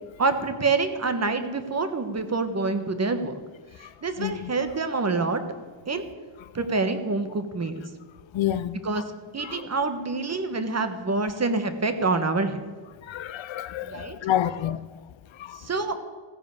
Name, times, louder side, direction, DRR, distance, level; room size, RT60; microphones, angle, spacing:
voice 1, 0.2-3.4 4.0-5.4 5.9-6.0 6.5-7.8 8.8-9.0 9.3-12.6 13.8-14.2 15.6-16.0, right 3 dB, 30° right, 1.2 m, -26 dB
voice 2, 4.2-4.5 8.3-8.8 9.4-9.7 13.0-14.8 15.3-15.6, left 11 dB, 65° left, 0.6 m, -29 dB
15.0 x 10.0 x 7.0 m
wide cardioid pair, 155°, 50 cm